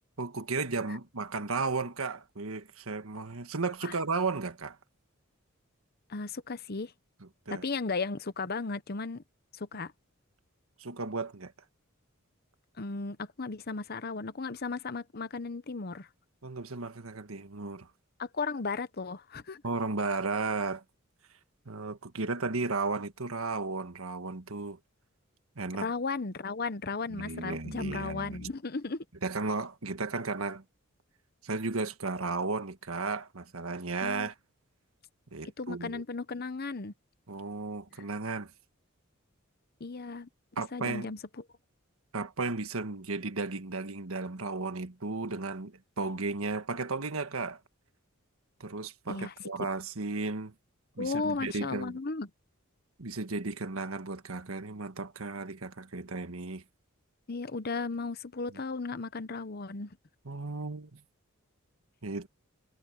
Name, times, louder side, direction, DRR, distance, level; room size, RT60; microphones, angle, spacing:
voice 1, 0.2-4.8 7.5-7.6 10.8-11.5 16.4-17.9 19.6-20.8 21.6-24.8 25.5-25.9 27.1-28.5 29.2-30.6 31.4-34.3 35.3-36.0 37.3-38.5 40.6-41.1 42.1-47.6 48.6-50.5 51.0-52.0 53.0-56.6 60.2-61.0 62.0-62.3, right 3 dB, 80° right, 1.6 m, -34 dB
voice 2, 6.1-6.9 7.5-9.2 9.5-9.9 12.8-16.1 18.2-19.6 25.8-29.0 34.0-34.3 35.6-36.9 39.8-40.3 40.7-41.2 49.1-49.3 51.0-52.3 57.3-60.0, left 4 dB, 45° left, 0.9 m, -35 dB
head